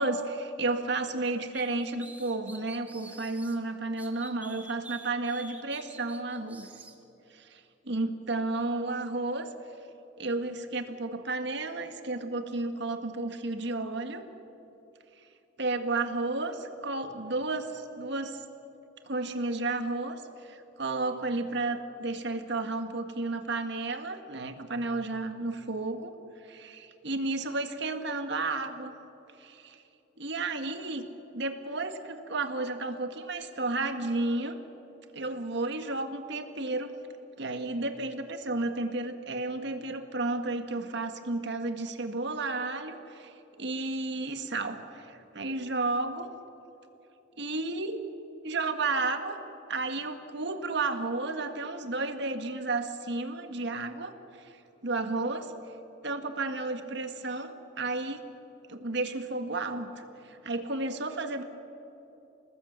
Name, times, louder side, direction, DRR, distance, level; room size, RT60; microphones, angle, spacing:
voice 1, 0.0-6.7 7.3-7.6 7.8-9.5 10.2-14.2 15.6-18.4 19.1-26.1 26.5-28.9 29.4-29.8 30.2-31.1 31.3-34.6 35.1-36.9 37.4-44.8 45.3-46.3 47.4-48.0 48.4-49.4 49.7-54.1 54.8-55.5 56.0-58.2 58.7-61.4, right 2 dB, 65° right, 7 dB, 1.8 m, -32 dB
sound 1, 1.5-3.6 4.0-7.0, right 2 dB, 10° right, 2.0 m, -48 dB
28.0 x 19.0 x 8.2 m, 2.9 s
head